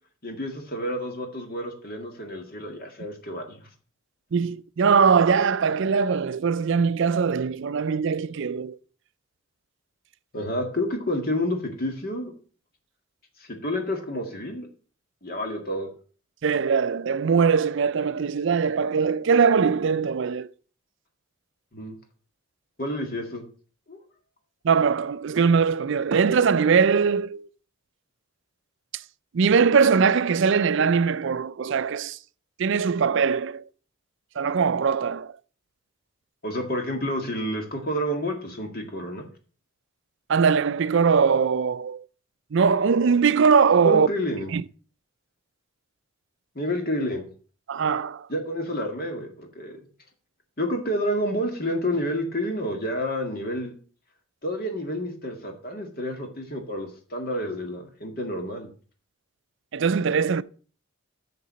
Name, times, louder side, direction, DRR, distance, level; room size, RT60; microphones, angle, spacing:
voice 1, 0.2-3.7 10.3-12.3 13.4-14.7 15.2-15.9 21.7-22.0 22.8-23.4 23.9-24.0 36.4-39.2 43.8-44.5 46.6-47.3 48.3-49.8 50.6-53.7 54.4-58.7, equal, 45° left, 1.9 m, -29 dB
voice 2, 4.3-8.8 16.4-20.5 24.6-27.5 29.3-32.2 32.6-33.6 34.4-35.3 40.3-42.0 42.5-44.1 44.5-44.6 47.7-48.3 59.7-60.4, right 5 dB, 55° right, 0.4 m, -21 dB
6.8 x 6.6 x 6.2 m
head